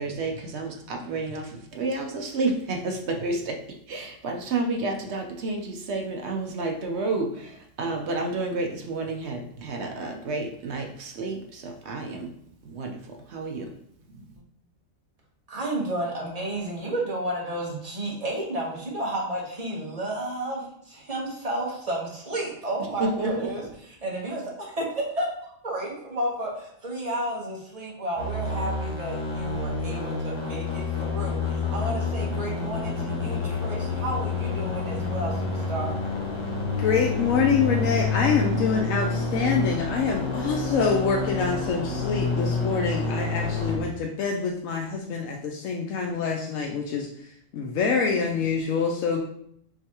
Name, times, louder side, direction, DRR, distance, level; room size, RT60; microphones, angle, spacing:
voice 1, 0.0-12.3 12.6-13.8 14.1-14.3 23.0-23.6, right 3 dB, 60° right, 3 dB, 0.8 m, -30 dB
voice 2, 15.5-23.6 24.0-36.0, right 1 dB, 30° right, -3 dB, 1.2 m, -32 dB
signal electrique, 28.2-43.8, left 3 dB, 25° left, 0.7 m, -28 dB
voice 3, 36.8-49.2, left 5 dB, 75° left, 0 dB, 1.0 m, -26 dB
4.6 x 3.3 x 2.9 m, 0.69 s
omnidirectional pair, 1.4 m